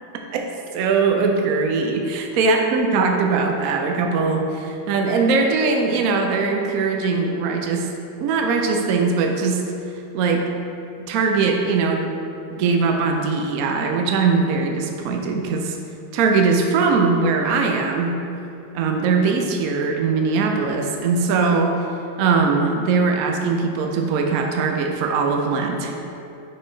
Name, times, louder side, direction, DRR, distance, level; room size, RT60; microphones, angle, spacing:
voice 1, 0.7-7.9 8.2-9.6 10.1-10.4 11.0-12.1 12.5-15.8 16.1-18.1 18.7-21.7 22.2-26.0, right 4 dB, 80° right, 2 dB, 0.8 m, -20 dB
6.3 x 3.8 x 3.9 m, 2.7 s
omnidirectional pair, 2.2 m